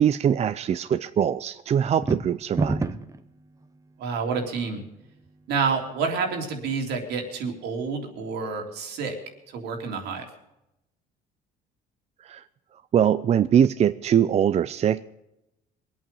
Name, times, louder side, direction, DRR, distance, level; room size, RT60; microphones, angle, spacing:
voice 1, 0.0-2.8 12.2-12.4 12.9-15.0, right 9 dB, 40° right, 12 dB, 0.5 m, -22 dB
sound 1, 1.9-3.2, right 3 dB, 20° right, 1.0 m, -26 dB
voice 2, 4.0-4.8 5.5-9.1 9.5-10.3, right 5 dB, 80° right, 2 dB, 3.3 m, -28 dB
22.5 x 8.7 x 5.4 m, 0.88 s
cardioid pair, 110°, 17 cm